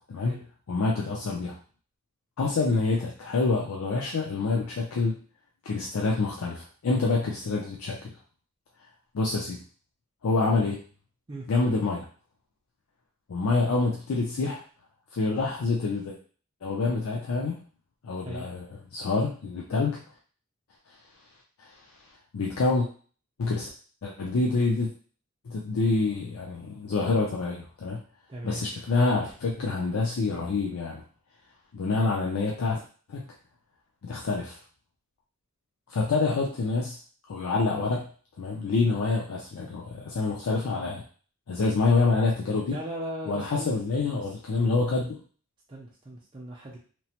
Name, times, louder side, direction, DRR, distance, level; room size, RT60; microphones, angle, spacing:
voice 1, 0.7-1.5 2.4-5.2 5.6-8.1 9.1-9.6 10.2-10.8 11.5-12.1 13.3-14.6 15.1-16.2 16.6-17.5 18.0-20.0 21.6-21.7 22.3-22.9 23.4-23.7 24.0-24.9 25.5-28.0 28.4-31.0 31.7-32.8 33.1-33.2 34.0-34.6 35.9-37.0 37.3-38.1 38.4-41.0 41.5-42.8 43.3-45.2, left 3 dB, 85° left, -2 dB, 0.5 m, -27 dB
voice 2, 28.3-28.6 42.7-44.3 44.7-44.8 45.7-46.8, right 1 dB, 20° right, -3 dB, 0.4 m, -38 dB
2.9 x 2.0 x 2.8 m, 0.41 s
head